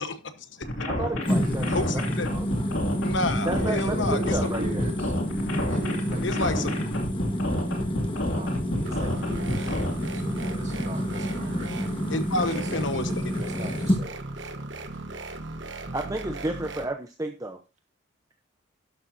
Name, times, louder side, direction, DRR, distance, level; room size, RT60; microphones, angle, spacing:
voice 1, 0.0-0.7 1.7-2.3 3.0-4.4 6.2-6.7 12.1-13.1, left 2 dB, 60° left, 1.2 m, -30 dB
sound 1, 0.6-9.9, left 1 dB, 80° left, 2.5 m, -30 dB
voice 2, 0.9-2.5 3.4-4.8 15.9-17.6, right 1 dB, 15° right, 0.7 m, -32 dB
sound 2, 1.2-14.0, equal, 25° left, 1.7 m, -29 dB
voice 3, 1.4-1.8 3.5-5.1 5.7-6.9 8.3-9.7 10.1-11.7 12.4-14.5, right 1 dB, 35° right, 2.2 m, -40 dB
sound 3, 8.9-16.9, right 2 dB, 60° right, 1.3 m, -37 dB
12.0 x 12.0 x 2.7 m
head